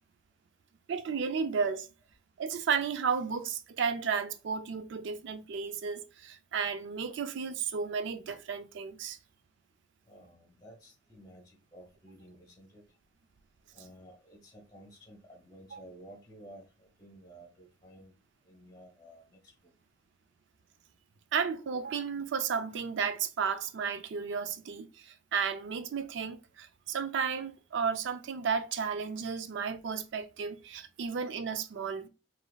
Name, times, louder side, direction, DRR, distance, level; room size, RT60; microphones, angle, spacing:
voice 1, 0.9-1.9 2.4-9.2 15.7-15.8 21.3-32.1, right 6 dB, 60° right, 0.4 m, -33 dB
voice 2, 10.1-12.8 13.7-18.1 18.5-19.4, equal, 20° left, 1.2 m, -53 dB
4.9 x 2.5 x 2.3 m
head